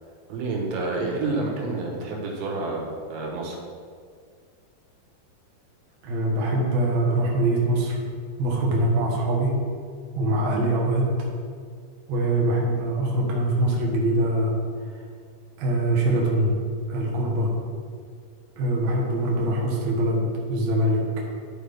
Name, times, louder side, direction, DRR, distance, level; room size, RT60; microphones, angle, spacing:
voice 1, 0.3-3.6, right 3 dB, 85° right, -1 dB, 3.6 m, -29 dB
voice 2, 6.0-8.1 8.4-9.6 10.1-11.3 12.1-15.1 15.6-16.5 16.9-17.5 18.6-21.2, right 1 dB, 60° right, -3 dB, 2.0 m, -23 dB
12.0 x 4.9 x 3.5 m, 2.1 s
omnidirectional pair, 5.0 m